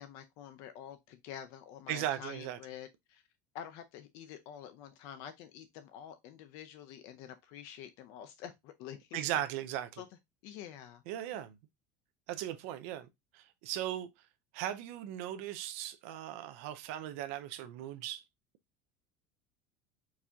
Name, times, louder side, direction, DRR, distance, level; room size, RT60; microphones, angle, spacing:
voice 1, 0.0-3.2 3.5-9.3 10.0-10.1 10.4-11.0, left 9 dB, 45° left, 0.4 m, -48 dB
voice 2, 1.9-2.6 9.1-10.0 11.1-11.5 12.3-13.1 13.3-14.1 14.5-18.2, right 12 dB, 65° right, 0.6 m, -38 dB
4.7 x 2.7 x 3.4 m
cardioid pair, 180°, 8 cm